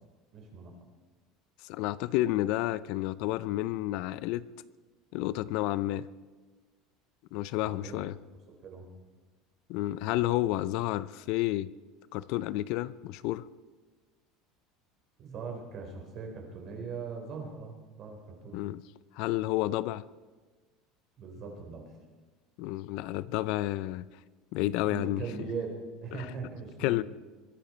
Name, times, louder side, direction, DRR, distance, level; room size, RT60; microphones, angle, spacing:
voice 1, 0.3-0.7 7.6-8.0 8.6-8.9 15.2-18.6 21.2-21.9 24.8-27.0, right 5 dB, 45° right, 2 dB, 4.1 m, -40 dB
voice 2, 1.6-4.5 5.1-6.1 7.3-8.2 9.7-11.7 12.1-13.5 18.5-18.8 19.1-20.0 22.6-24.0 24.5-25.2 26.1-26.3 26.8-27.0, left 16 dB, 65° left, 18 dB, 0.5 m, -30 dB
22.0 x 11.0 x 4.4 m, 1.3 s
supercardioid pair, 130°, 0 cm